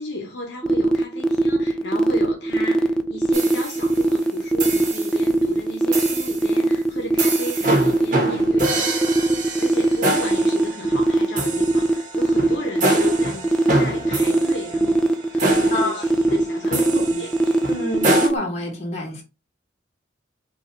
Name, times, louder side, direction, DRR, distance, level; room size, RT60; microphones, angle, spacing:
voice 1, 0.0-9.1 9.3-15.0 15.4-17.6, left 2 dB, 65° left, 0.8 m, -34 dB
sound 1, 0.6-18.3, right 2 dB, 5° left, 0.4 m, -19 dB
sound 2, 3.3-4.1 4.6-5.2 5.9-6.5 7.2-18.3, right 2 dB, 45° right, 1.0 m, -26 dB
voice 2, 15.7-16.0 16.7-17.0 17.7-19.2, left 2 dB, 35° left, 1.3 m, -28 dB
5.3 x 2.4 x 2.9 m
head